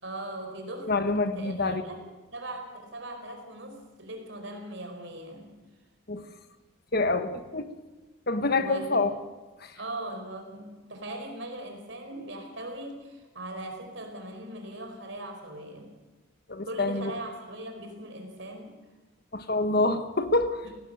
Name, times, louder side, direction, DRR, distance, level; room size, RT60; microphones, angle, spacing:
voice 1, 0.0-2.0 2.3-5.5 8.6-9.0 9.7-15.9 16.6-18.7 20.6-20.7, right 1 dB, 65° right, 4 dB, 4.7 m, -40 dB
voice 2, 0.9-1.8 6.1-6.2 6.9-7.7 8.3-9.1 9.6-9.7 16.5-17.1 19.3-20.6, left 2 dB, 50° left, 10 dB, 1.3 m, -26 dB
18.0 x 17.0 x 8.9 m, 1.1 s
head